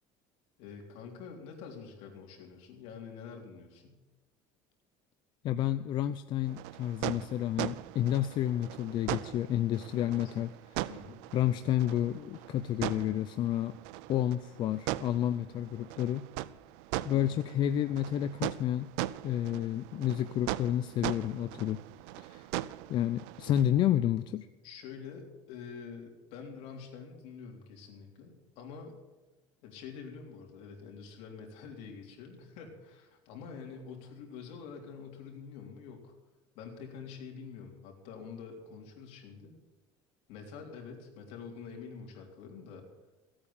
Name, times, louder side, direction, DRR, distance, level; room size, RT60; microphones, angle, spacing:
voice 1, 0.6-4.0 10.0-10.3 10.9-11.2 17.1-17.4 24.6-28.9 29.6-36.1 36.5-39.5 40.3-42.8, left 6 dB, 70° left, 1 dB, 3.5 m, -46 dB
voice 2, 5.4-10.9 11.3-13.8 14.1-16.3 17.0-18.9 19.2-21.8 22.2-22.5 22.9-24.5, left 11 dB, 45° left, 11 dB, 0.5 m, -30 dB
sound 1, 6.5-23.6, right 16 dB, 85° right, 0.5 m, -40 dB
17.0 x 8.8 x 7.2 m, 1.1 s
cardioid pair, 145°, 11 cm